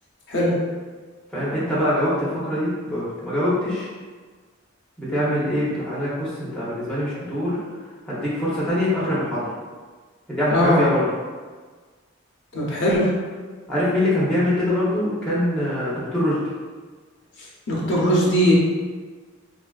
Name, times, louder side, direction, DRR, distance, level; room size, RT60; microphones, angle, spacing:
voice 1, 1.3-3.9 5.0-7.6 8.1-9.5 10.3-11.0 13.7-16.4, left 1 dB, 5° left, -9 dB, 0.7 m, -23 dB
voice 2, 12.5-13.1 17.7-18.5, equal, 55° left, -5 dB, 0.7 m, -19 dB
3.6 x 2.4 x 2.3 m, 1.5 s
head